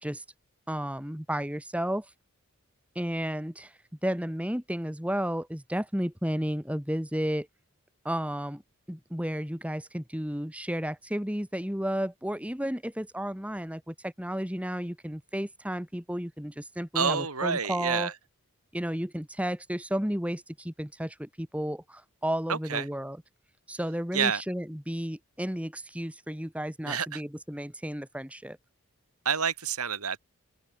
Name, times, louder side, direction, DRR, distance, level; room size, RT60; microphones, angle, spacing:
voice 1, 0.7-2.1 3.0-3.7 4.0-7.5 8.1-8.6 8.9-18.1 18.7-23.2 23.7-28.6, equal, 5° right, 1.8 m, -32 dB
voice 2, 17.0-18.1 22.5-22.9 24.1-24.4 26.9-27.2 29.3-30.2, right 6 dB, 85° right, 3.5 m, -28 dB
open air
head